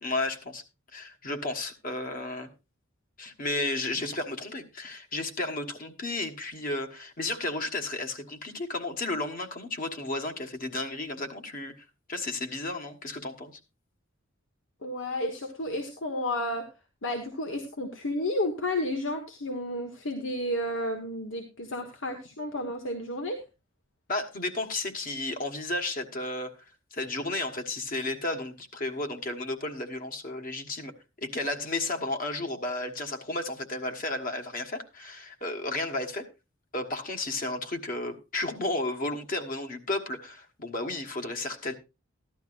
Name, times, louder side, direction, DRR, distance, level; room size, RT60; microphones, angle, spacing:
voice 1, 0.0-0.6 0.9-2.5 3.2-13.6 24.1-26.5 26.9-36.3 36.7-41.8, left 2 dB, 45° left, 1.4 m, -33 dB
voice 2, 14.8-16.7 17.0-23.4, left 1 dB, 75° left, 1.4 m, -32 dB
15.0 x 11.5 x 2.5 m
head